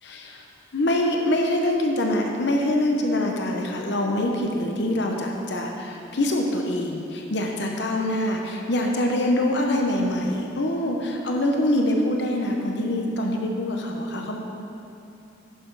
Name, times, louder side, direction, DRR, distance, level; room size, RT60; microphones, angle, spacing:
voice 1, 0.0-0.4 0.7-14.4, left 1 dB, 65° left, 1 dB, 0.8 m, -24 dB
11.0 x 6.7 x 4.7 m, 2.8 s
head